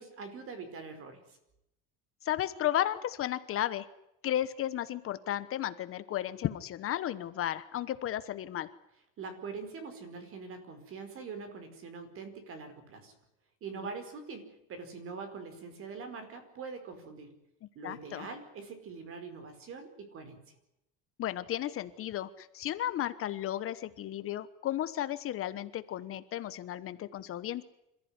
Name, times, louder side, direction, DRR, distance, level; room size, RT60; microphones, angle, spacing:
voice 1, 0.0-1.4 9.2-13.1 13.6-17.3 17.7-20.4, right 4 dB, 40° right, 8 dB, 5.0 m, -43 dB
voice 2, 2.2-3.9 4.2-8.7 17.8-18.3 21.2-27.6, left 12 dB, 40° left, 13 dB, 1.1 m, -34 dB
27.0 x 14.5 x 9.7 m, 0.85 s
cardioid pair, 170°, 32 cm